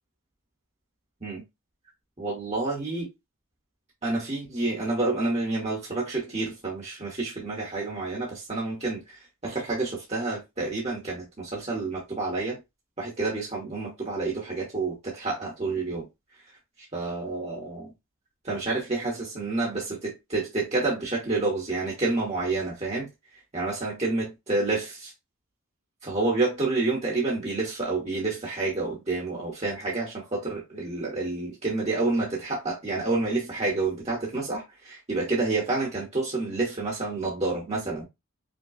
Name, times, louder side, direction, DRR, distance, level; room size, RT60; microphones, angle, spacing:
voice 1, 2.2-3.1 4.0-12.6 13.0-16.1 16.9-17.9 18.4-23.1 23.5-25.1 26.0-38.0, right 3 dB, 30° right, 1.1 m, -29 dB
5.3 x 2.3 x 2.3 m
head